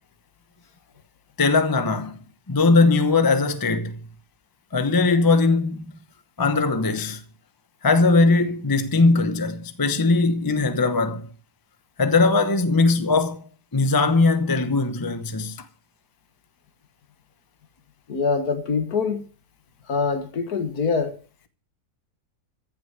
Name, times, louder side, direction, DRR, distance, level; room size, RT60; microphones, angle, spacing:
voice 1, 1.4-2.2 2.5-4.0 4.7-5.8 6.4-7.2 7.8-11.3 12.0-15.6, left 3 dB, 20° left, 0.7 m, -20 dB
voice 2, 18.1-19.3 19.9-21.2, left 5 dB, 65° left, 2.1 m, -24 dB
15.0 x 6.4 x 7.8 m
omnidirectional pair, 1.8 m